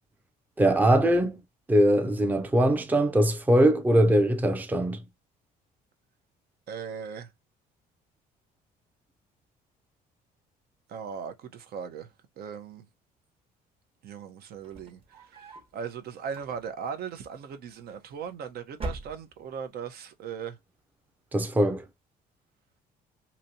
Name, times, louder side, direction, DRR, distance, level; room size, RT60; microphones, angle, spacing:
voice 1, 0.6-1.4 1.7-5.0 21.3-21.8, right 1 dB, 10° right, 0.5 m, -22 dB
voice 2, 6.7-7.3 10.9-12.1 12.4-12.8 14.0-20.6, right 7 dB, 65° right, 0.9 m, -38 dB
sound 1, 14.6-15.8 16.2-16.9 17.9-18.4 18.7-19.6, right 1 dB, 35° right, 1.1 m, -40 dB
3.1 x 2.8 x 2.7 m
cardioid pair, 110°, 17 cm